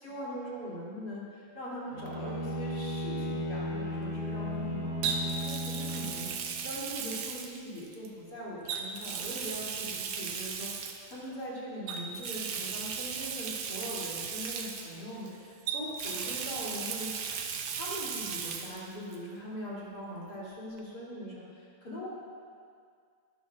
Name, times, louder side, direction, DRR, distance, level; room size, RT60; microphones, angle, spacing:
voice 1, 0.0-17.2 17.7-22.1, equal, 30° left, -8 dB, 3.2 m, -41 dB
Bowed string instrument, 1.9-6.8, equal, 65° left, 2.7 m, -35 dB
Water tap faucet, 2.1-2.3 5.0-8.1 8.7-11.1 11.9-15.3 15.7-18.8 19.1-19.2 20.8-20.9, right 6 dB, 70° right, 1.9 m, -36 dB
20.5 x 12.5 x 2.5 m, 2.2 s
omnidirectional pair, 3.6 m